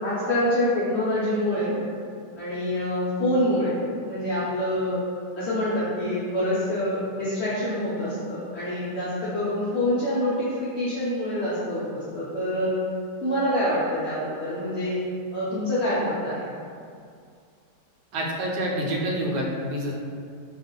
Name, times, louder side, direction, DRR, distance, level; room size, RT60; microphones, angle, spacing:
voice 1, 0.0-1.7 2.4-3.8 4.0-5.0 5.4-12.8 13.2-15.0 15.3-16.5, left 1 dB, 70° left, -10 dB, 0.6 m, -26 dB
voice 2, 18.1-19.9, right 1 dB, 80° right, -2 dB, 1.2 m, -27 dB
2.6 x 2.5 x 3.6 m, 2.3 s
omnidirectional pair, 1.8 m